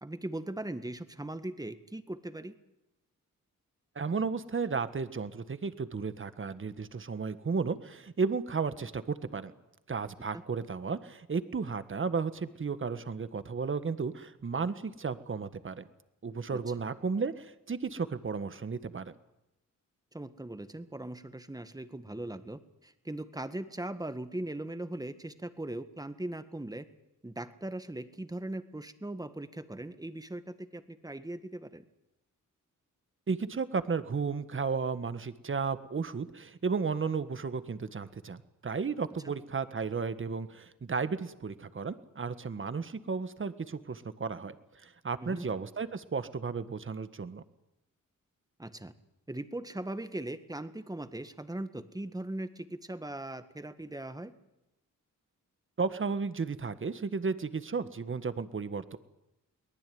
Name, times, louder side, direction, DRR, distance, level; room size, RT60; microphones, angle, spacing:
voice 1, 0.0-2.5 16.5-16.6 20.1-26.9 27.2-31.8 39.2-39.3 45.2-45.5 48.6-48.9 49.3-54.3, right 1 dB, 10° right, 10 dB, 1.8 m, -39 dB
voice 2, 3.9-9.5 9.9-15.8 16.2-19.1 33.3-44.5 44.8-47.4 55.8-59.0, right 5 dB, 40° right, 12 dB, 1.6 m, -34 dB
23.5 x 19.5 x 9.5 m, 0.90 s
cardioid pair, 95°, 32 cm